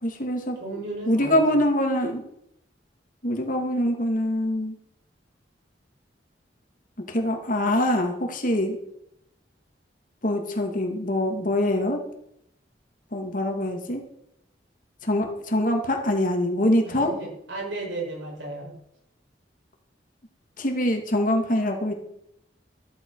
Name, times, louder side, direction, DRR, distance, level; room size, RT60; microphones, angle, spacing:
voice 1, 0.0-0.6 1.1-2.2 3.2-4.7 7.1-8.8 10.2-12.0 13.1-14.0 15.0-17.1 20.6-21.9, left 1 dB, 45° left, 3 dB, 2.5 m, -24 dB
voice 2, 0.6-1.4 16.8-18.8, right 2 dB, 75° right, -2 dB, 7.8 m, -34 dB
14.5 x 14.0 x 4.9 m, 0.77 s
head